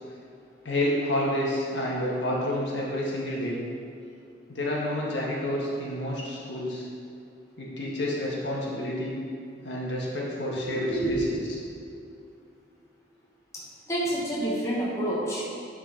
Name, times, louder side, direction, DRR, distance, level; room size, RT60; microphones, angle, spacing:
voice 1, 0.6-3.6 4.5-6.9 7.6-9.2 9.6-11.6, left 1 dB, 80° left, -4 dB, 1.6 m, -29 dB
voice 2, 10.8-11.5 13.9-15.4, right 1 dB, 15° left, -6 dB, 1.3 m, -28 dB
8.9 x 4.4 x 4.3 m, 2.5 s
head